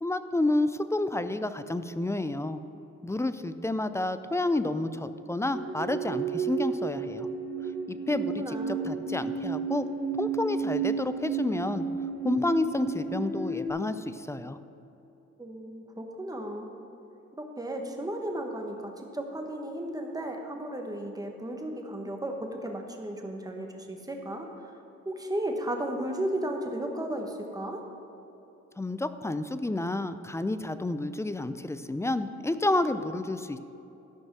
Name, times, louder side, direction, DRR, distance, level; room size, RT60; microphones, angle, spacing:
voice 1, 0.0-2.6 3.0-7.3 7.9-9.9 10.2-11.9 12.2-14.6 28.8-33.6, left 2 dB, 10° left, 11 dB, 0.4 m, -30 dB
sound 1, 5.5-13.7, right 5 dB, 45° right, 2.2 m, -32 dB
voice 2, 8.4-8.8 15.4-16.7 17.4-24.7 25.0-27.8, right 1 dB, 10° right, 3 dB, 1.4 m, -34 dB
12.5 x 5.3 x 6.1 m, 2.9 s
cardioid pair, 90°, 30 cm